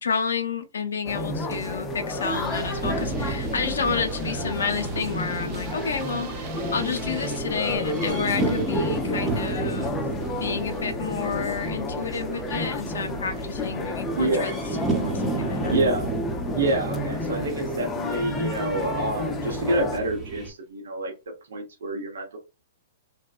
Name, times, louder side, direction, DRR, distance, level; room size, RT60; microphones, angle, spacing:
voice 1, 0.0-10.0 10.4-14.5 15.0-15.8, left 5 dB, 85° left, 0.5 m, -30 dB
Airport Lounge Melbourne Australia, 1.1-20.0, left 2 dB, 20° left, 0.5 m, -31 dB
sound 1, 2.3-14.4 14.7-15.3 15.6-16.2 16.5-16.7 17.1-17.2 17.4-17.5, right 3 dB, 45° right, 0.6 m, -41 dB
sound 2, 2.8-20.5, right 3 dB, 10° right, 0.9 m, -33 dB
voice 2, 14.2-14.5 15.7-16.1 16.5-21.1 21.5-22.4, right 2 dB, 75° right, 0.8 m, -27 dB
2.7 x 2.1 x 2.3 m
hypercardioid pair, 130°, 0 cm